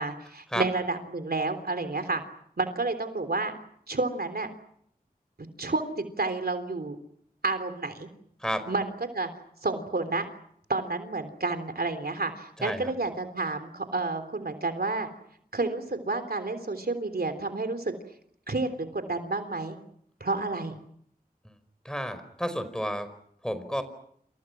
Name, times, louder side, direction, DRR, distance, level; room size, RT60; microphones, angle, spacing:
voice 1, 0.0-2.2 2.6-3.5 3.9-4.5 5.6-6.9 7.4-8.1 8.7-8.9 9.1-9.3 9.6-10.3 10.7-15.1 15.5-17.9 18.5-19.8 20.2-20.7, right 3 dB, 80° right, 8 dB, 3.4 m, -30 dB
voice 2, 12.6-12.9 21.8-23.1 23.4-23.8, equal, 5° left, 11 dB, 5.0 m, -31 dB
29.0 x 28.5 x 6.1 m, 0.68 s
wide cardioid pair, 55°, 16 cm